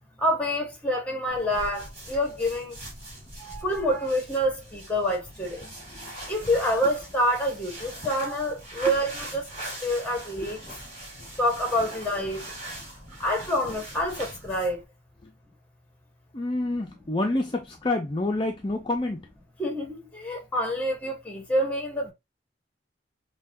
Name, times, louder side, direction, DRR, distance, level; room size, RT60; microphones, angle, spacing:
voice 1, 0.2-2.8 3.4-5.7 6.3-9.5 9.8-10.6 11.4-12.5 13.2-14.8 19.6-22.1, equal, 5° left, 1.2 m, -27 dB
sound 1, 1.3-14.8, right 1 dB, 35° right, 2.0 m, -42 dB
voice 2, 5.6-6.1 8.9-9.0 11.2-11.3 15.2-15.3 16.3-19.3, left 2 dB, 25° left, 0.5 m, -29 dB
5.6 x 2.3 x 2.6 m
head